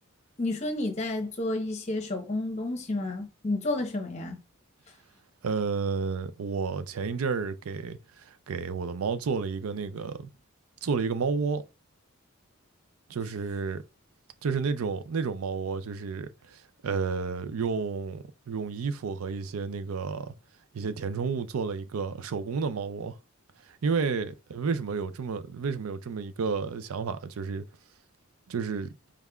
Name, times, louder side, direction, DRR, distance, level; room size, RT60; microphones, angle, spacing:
voice 1, 0.4-4.4, left 2 dB, 30° left, 0.9 m, -31 dB
voice 2, 5.4-10.3 10.8-11.6 13.1-13.8 14.4-20.3 20.7-23.1 23.7-27.7 28.5-28.9, right 5 dB, 85° right, 0.5 m, -31 dB
5.5 x 3.4 x 2.4 m
head